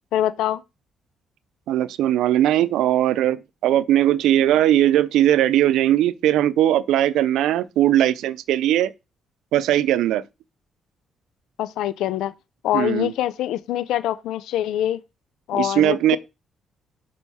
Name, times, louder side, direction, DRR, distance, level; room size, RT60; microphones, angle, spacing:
voice 1, 0.1-0.6 11.6-12.3 12.6-15.0 15.5-16.2, left 12 dB, 85° left, 0.5 m, -24 dB
voice 2, 1.7-8.9 9.5-10.2 12.7-13.1 15.5-16.2, right 12 dB, 85° right, 0.5 m, -19 dB
6.3 x 4.5 x 5.5 m
cardioid pair, 90°, 0 cm